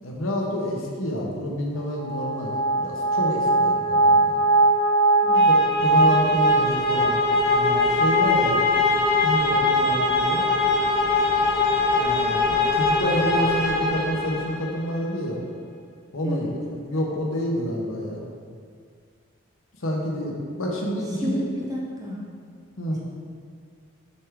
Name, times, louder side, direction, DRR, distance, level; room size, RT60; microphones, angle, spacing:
voice 1, 0.0-2.5 2.8-4.4 5.5-7.2 7.5-8.6 9.2-10.4 11.9-15.4 16.1-16.5 16.8-18.2 19.8-21.4 22.8-23.0, equal, 85° left, -1 dB, 1.1 m, -28 dB
sound 1, 2.0-14.8, equal, 25° left, 1.0 m, -21 dB
voice 2, 5.2-5.7 6.0-6.4 16.2-16.5 21.1-22.3, equal, 15° right, -4 dB, 0.9 m, -32 dB
7.3 x 3.4 x 4.8 m, 2.1 s
head